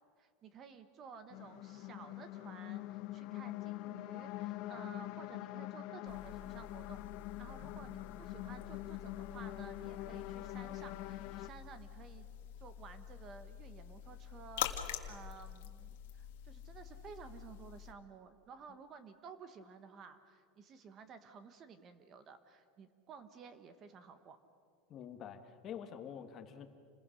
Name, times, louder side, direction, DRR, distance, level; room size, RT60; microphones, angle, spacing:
voice 1, 0.2-7.0 7.4-12.3 12.6-24.4, right 6 dB, 25° right, 11 dB, 1.1 m, -54 dB
sound 1, 1.3-11.5, left 15 dB, 45° left, 0.8 m, -44 dB
sound 2, 6.1-17.9, left 11 dB, 80° left, 1.8 m, -47 dB
voice 2, 24.9-26.7, left 8 dB, 25° left, 7 dB, 1.3 m, -47 dB
28.5 x 21.0 x 6.4 m, 2.1 s
supercardioid pair, 170°, 0 cm